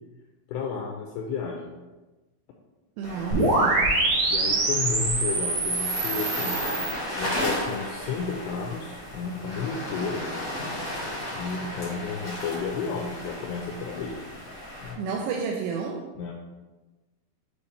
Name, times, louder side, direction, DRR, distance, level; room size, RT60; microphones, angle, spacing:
voice 1, 0.5-1.8 4.3-6.6 7.2-10.2 11.3-14.2 14.8-15.2 16.2-16.3, left 5 dB, 85° left, 1 dB, 2.4 m, -32 dB
sound 1, 3.0-14.9, left 1 dB, 55° left, 1.1 m, -34 dB
voice 2, 3.0-3.9 15.0-16.1, right 5 dB, 85° right, 0 dB, 2.9 m, -31 dB
sound 2, 3.3-6.9, right 2 dB, 65° right, 2.6 m, -24 dB
7.9 x 2.8 x 4.2 m, 1.2 s
omnidirectional pair, 5.2 m